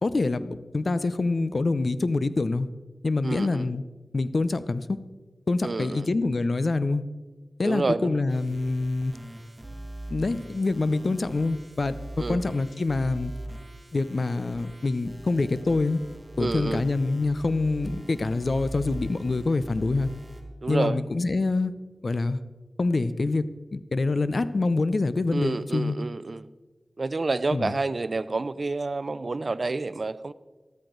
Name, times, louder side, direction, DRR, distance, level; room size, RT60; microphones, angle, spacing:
voice 1, 0.0-2.7 3.0-3.8 4.1-5.0 5.5-7.0 7.6-9.1 10.1-13.3 13.9-16.0 16.4-20.1 20.7-21.7 22.0-22.4 22.8-23.5 23.7-26.0 27.5-27.7, left 3 dB, 60° left, 14 dB, 0.6 m, -26 dB
voice 2, 3.2-3.7 5.6-6.1 7.6-8.2 12.2-12.4 16.4-16.8 20.6-21.0 25.3-26.5 27.0-30.3, right 3 dB, 60° right, 16 dB, 0.5 m, -29 dB
sound 1, 8.3-20.4, right 1 dB, 20° right, 2.2 m, -41 dB
13.5 x 13.0 x 3.9 m, 1.3 s
cardioid pair, 50°, 0 cm